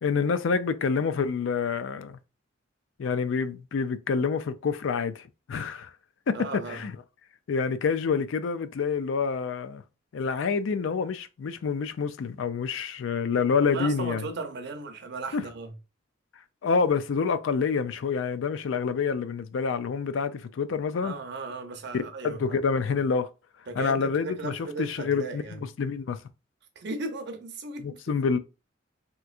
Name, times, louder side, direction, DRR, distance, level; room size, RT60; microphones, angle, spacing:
voice 1, 0.0-2.2 3.0-5.9 6.3-6.4 6.7-6.9 7.5-9.8 10.1-14.2 15.3-15.4 16.6-21.1 21.9-23.3 23.8-26.2 27.8-28.4, left 5 dB, 80° left, 0.4 m, -27 dB
voice 2, 6.3-6.8 13.6-15.7 21.0-22.6 23.7-25.6 26.8-28.0, right 3 dB, 60° right, 0.7 m, -36 dB
3.4 x 3.0 x 2.4 m
head